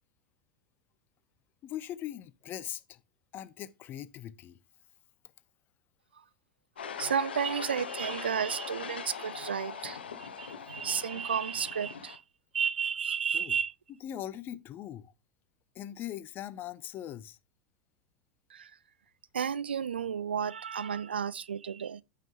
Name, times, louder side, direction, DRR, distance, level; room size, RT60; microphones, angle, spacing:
voice 1, 1.6-3.0 3.3-4.6 13.3-13.6 14.0-15.1 15.7-17.4, left 11 dB, 40° left, 0.8 m, -40 dB
sound 1, 6.8-12.2, left 6 dB, 80° left, 1.0 m, -41 dB
voice 2, 7.0-12.2 12.5-13.7 18.5-18.7 19.3-22.0, right 7 dB, 85° right, 0.4 m, -32 dB
9.0 x 5.7 x 3.3 m
hypercardioid pair, 90°, 5 cm